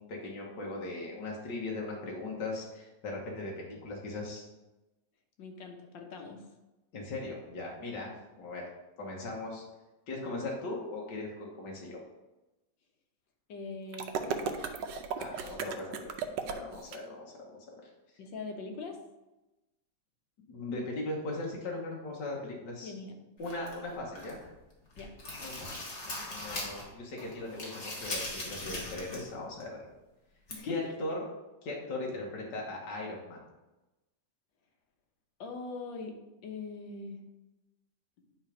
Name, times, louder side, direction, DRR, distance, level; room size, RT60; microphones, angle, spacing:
voice 1, 0.0-4.4 6.9-8.1 8.4-8.7 9.0-9.6 10.1-12.0 15.2-16.1 16.5-17.6 20.5-22.9 23.4-24.4 25.4-29.8 30.6-31.2 31.6-33.4, left 2 dB, 70° left, -2 dB, 1.9 m, -39 dB
voice 2, 5.4-6.4 13.5-14.7 18.2-19.0 22.8-23.2 25.0-25.1 30.5-30.9 35.4-36.2 36.4-37.2, left 4 dB, 85° left, 3 dB, 1.8 m, -41 dB
sound 1, 13.9-17.0, right 6 dB, 75° right, 1.3 m, -35 dB
sound 2, 23.4-24.5 24.8-26.9 27.2-29.3 29.6-29.7 30.5-30.6, left 2 dB, 40° left, 1.8 m, -40 dB
9.7 x 3.4 x 5.1 m, 1.0 s
omnidirectional pair, 2.0 m